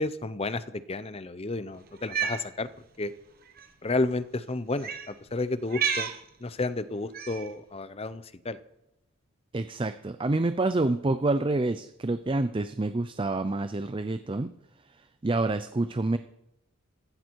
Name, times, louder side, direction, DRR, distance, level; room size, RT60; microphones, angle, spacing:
voice 1, 0.0-2.7 3.0-3.1 3.8-6.1 6.4-8.6, left 2 dB, 30° left, 15 dB, 0.7 m, -31 dB
Cat, 2.0-2.4 3.5-3.7 4.8-5.1 5.7-6.2 7.1-7.5, right 7 dB, 45° right, 1.5 m, -30 dB
voice 2, 9.5-14.5 14.9-16.2, right 2 dB, 25° right, 11 dB, 0.5 m, -28 dB
15.0 x 15.0 x 4.6 m, 0.88 s
head